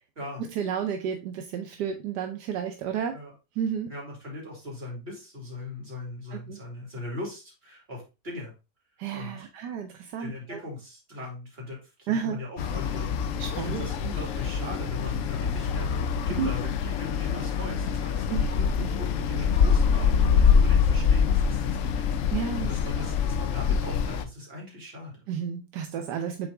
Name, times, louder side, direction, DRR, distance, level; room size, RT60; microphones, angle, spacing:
voice 1, 0.4-3.2 3.6-3.9 6.3-6.6 9.0-10.6 12.1-12.4 13.4-13.8 16.4-16.5 18.3-19.0 22.3-22.7 25.3-26.5, right 8 dB, 80° right, 6 dB, 1.3 m, -32 dB
voice 2, 3.9-8.5 9.1-9.5 10.2-13.3 13.6-22.1 22.6-25.1, left 2 dB, 35° right, -2 dB, 2.8 m, -39 dB
sound 1, 12.6-24.2, left 6 dB, 65° left, 0.8 m, -25 dB
6.8 x 4.0 x 3.4 m, 0.28 s
omnidirectional pair, 1.8 m